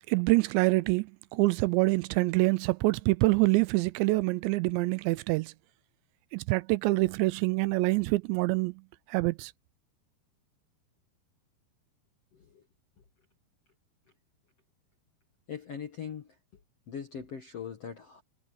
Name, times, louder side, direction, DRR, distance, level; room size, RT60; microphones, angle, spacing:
voice 1, 0.1-5.5 6.3-8.8 9.1-9.5, right 23 dB, 85° right, 2.8 m, -26 dB
voice 2, 12.3-12.6 15.5-16.3 16.9-18.2, left 7 dB, 65° left, 1.5 m, -40 dB
omnidirectional pair, 5.2 m